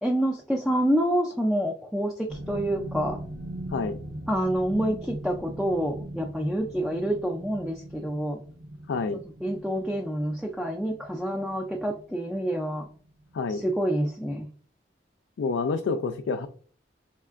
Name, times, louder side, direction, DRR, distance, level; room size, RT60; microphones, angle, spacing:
voice 1, 0.0-3.2 4.3-8.4 9.4-12.8 13.5-14.5, equal, ahead, 0 dB, 0.3 m, -27 dB
sound 1, 2.3-13.0 13.3-13.6 14.0-14.1, right 1 dB, 60° right, 0.7 m, -40 dB
voice 2, 8.9-9.2 13.3-13.6 15.4-16.5, left 4 dB, 75° left, 6 dB, 0.3 m, -28 dB
4.4 x 3.2 x 2.4 m, 0.43 s
head